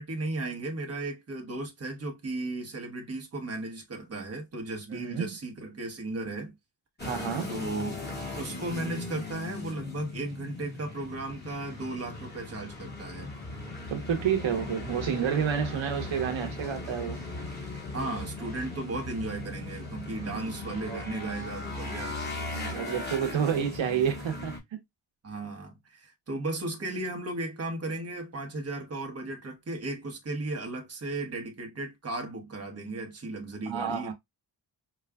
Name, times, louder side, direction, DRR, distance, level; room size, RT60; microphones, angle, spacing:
voice 1, 0.0-6.5 7.5-8.0 8.3-13.3 17.9-22.2 25.2-34.1, right 2 dB, 30° right, 0.9 m, -35 dB
voice 2, 4.9-5.3 7.0-7.5 13.9-17.2 20.3-20.4 20.9-21.0 22.5-24.5 33.7-34.1, right 8 dB, 75° right, 0.9 m, -29 dB
sound 1, 7.0-24.6, left 2 dB, 20° left, 1.5 m, -38 dB
4.8 x 2.3 x 2.2 m
wide cardioid pair, 145°, 46 cm